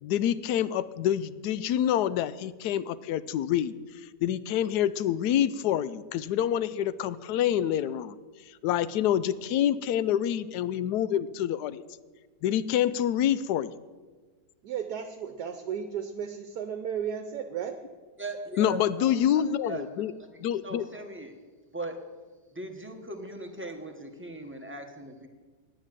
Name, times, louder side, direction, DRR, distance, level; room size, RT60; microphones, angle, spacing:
voice 1, 0.0-8.2 8.5-11.8 12.4-13.7 18.6-20.1 20.4-20.9, left 10 dB, 75° left, 16 dB, 1.1 m, -27 dB
voice 2, 14.6-17.8, right 8 dB, 70° right, 6 dB, 1.3 m, -34 dB
voice 3, 18.2-20.3 20.6-21.3 21.7-22.0 22.5-25.3, right 1 dB, 10° right, 3 dB, 0.9 m, -39 dB
9.8 x 9.7 x 7.4 m, 1.4 s
omnidirectional pair, 1.8 m